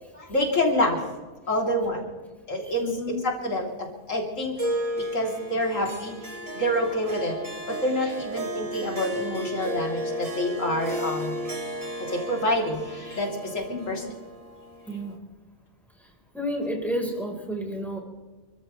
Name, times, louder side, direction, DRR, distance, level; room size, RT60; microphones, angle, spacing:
voice 1, 0.1-1.0 1.4-2.1 2.5-4.6 5.0-7.4 7.7-11.4 12.1-14.0, left 1 dB, 90° left, 0 dB, 3.8 m, -27 dB
voice 2, 2.6-3.3 13.7-14.1 14.9-15.2 16.3-18.0, equal, ahead, -1 dB, 4.4 m, -31 dB
Harp, 4.6-15.2, right 1 dB, 30° right, 1.7 m, -34 dB
29.5 x 13.5 x 3.3 m, 1.3 s
omnidirectional pair, 1.3 m